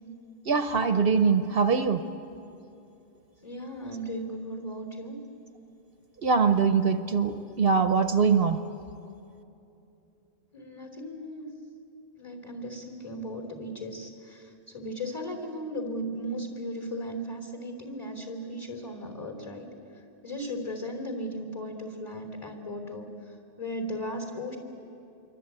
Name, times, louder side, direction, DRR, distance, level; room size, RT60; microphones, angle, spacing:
voice 1, 0.5-2.0 6.2-8.6, right 5 dB, 60° right, 9 dB, 1.0 m, -23 dB
voice 2, 3.4-5.2 10.5-11.5 12.2-19.7 20.2-23.1 23.6-24.6, equal, 25° left, 4 dB, 3.5 m, -36 dB
27.0 x 23.5 x 8.9 m, 2.8 s
omnidirectional pair, 1.1 m